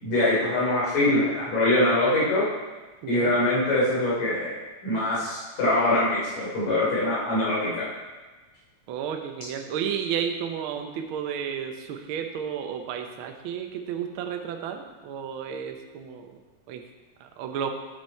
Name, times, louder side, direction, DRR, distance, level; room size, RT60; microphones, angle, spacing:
voice 1, 0.0-2.4 3.1-4.6 4.8-7.8, left 1 dB, 75° left, -7 dB, 4.7 m, -23 dB
voice 2, 3.0-3.4 8.9-16.4 16.7-16.8 17.2-17.7, right 8 dB, 85° right, 5 dB, 1.1 m, -32 dB
9.0 x 7.4 x 4.5 m, 1.3 s
omnidirectional pair, 3.4 m